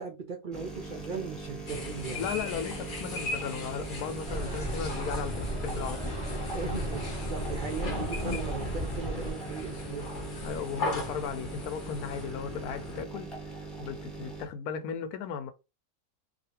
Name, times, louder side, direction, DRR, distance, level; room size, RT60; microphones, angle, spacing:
voice 1, 0.0-2.2 6.5-10.1, right 5 dB, 80° right, 0.4 m, -38 dB
sound 1, 0.5-14.5, right 3 dB, ahead, 0.5 m, -41 dB
sound 2, 1.7-13.0, left 3 dB, 45° left, 0.7 m, -38 dB
voice 2, 2.2-6.2 10.4-15.5, left 7 dB, 85° left, 1.1 m, -36 dB
sound 3, 4.3-9.3, right 1 dB, 20° left, 1.0 m, -35 dB
2.7 x 2.5 x 2.8 m
omnidirectional pair, 1.6 m